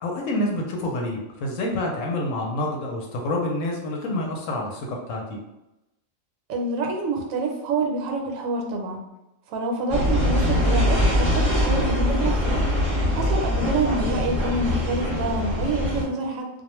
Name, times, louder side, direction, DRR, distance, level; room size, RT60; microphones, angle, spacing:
voice 1, 0.0-5.4 13.1-13.3, left 1 dB, 70° left, 0 dB, 0.9 m, -28 dB
voice 2, 6.5-9.0 9.5-12.4 13.1-16.5, right 2 dB, 75° right, 2 dB, 1.0 m, -27 dB
sound 1, 9.9-16.0, left 1 dB, 25° left, 0.9 m, -23 dB
2.3 x 2.0 x 2.9 m, 0.93 s
omnidirectional pair, 1.4 m